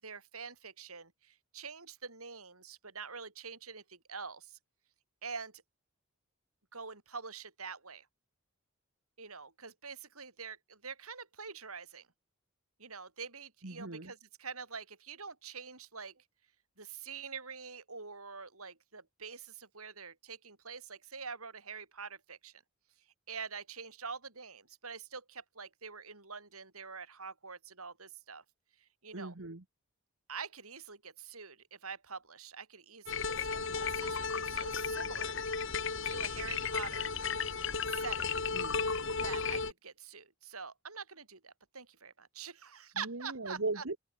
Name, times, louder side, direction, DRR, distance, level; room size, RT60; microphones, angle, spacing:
voice 1, 0.0-4.6 5.2-5.6 6.7-8.1 9.2-12.1 12.8-16.2 16.8-22.5 23.3-28.4 28.8-29.3 30.3-35.4 36.0-37.1 37.9-38.3 39.2-43.8, right 5 dB, 80° right, 7.7 m, -45 dB
voice 2, 13.6-14.1 29.1-29.6 38.5-38.8 43.0-44.0, right 3 dB, 65° right, 1.4 m, -38 dB
sound 1, 33.1-39.7, left 5 dB, 60° left, 2.4 m, -34 dB
head